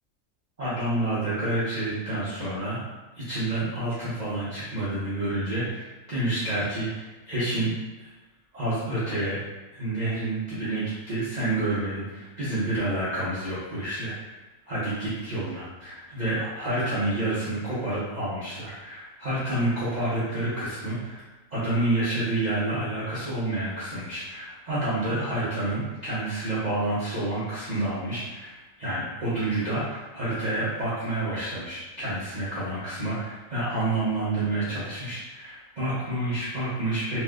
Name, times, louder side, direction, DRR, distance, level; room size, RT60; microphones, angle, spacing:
voice 1, 0.6-2.8 3.1-8.1 8.5-9.4 9.7-21.2 21.5-37.2, right 1 dB, 40° right, -11 dB, 0.7 m, -29 dB
3.2 x 2.6 x 2.3 m, 1.1 s
omnidirectional pair, 1.5 m